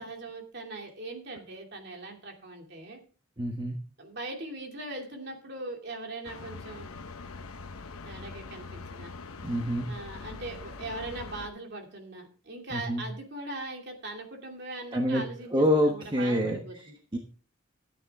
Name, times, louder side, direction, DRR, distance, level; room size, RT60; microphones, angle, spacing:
voice 1, 0.0-3.0 4.0-7.0 8.0-9.1 9.9-17.0, right 2 dB, 50° right, 2 dB, 2.8 m, -40 dB
voice 2, 3.4-3.8 9.4-9.9 12.7-13.0 14.9-15.2 15.5-16.6 17.1-17.2, equal, 20° right, 1 dB, 1.2 m, -26 dB
sound 1, 6.2-11.5, left 3 dB, 85° left, 1.0 m, -43 dB
13.5 x 9.2 x 3.6 m, 0.39 s
head